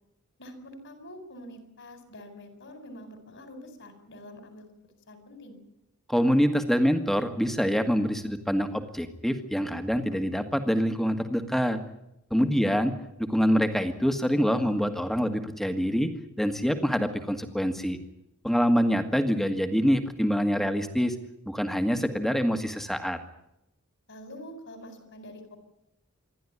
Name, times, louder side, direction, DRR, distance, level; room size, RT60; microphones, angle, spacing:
voice 1, 0.4-4.6 5.1-5.6 12.5-12.9 18.7-18.9 24.1-25.6, equal, 55° left, 7 dB, 4.5 m, -46 dB
voice 2, 6.1-11.8 12.3-12.9 13.3-16.1 16.4-18.0 18.4-21.1 21.4-23.2, equal, ahead, 7 dB, 1.6 m, -25 dB
27.0 x 11.5 x 9.8 m, 0.83 s
head